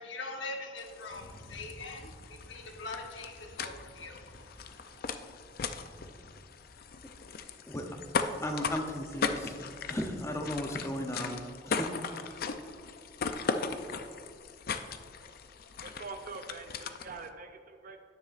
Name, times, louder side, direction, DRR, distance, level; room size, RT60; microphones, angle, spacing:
voice 1, 0.0-5.0, left 3 dB, 70° left, 2 dB, 1.1 m, -43 dB
sound 1, 0.8-17.3, left 5 dB, 50° left, 0.4 m, -38 dB
sound 2, 1.0-6.7, equal, 85° left, 1.8 m, -54 dB
voice 2, 8.4-11.4 11.7-11.9, equal, 15° left, 4 dB, 0.7 m, -35 dB
voice 3, 15.3-18.0, right 4 dB, 45° right, 5 dB, 0.4 m, -45 dB
10.0 x 9.4 x 2.5 m, 2.1 s
head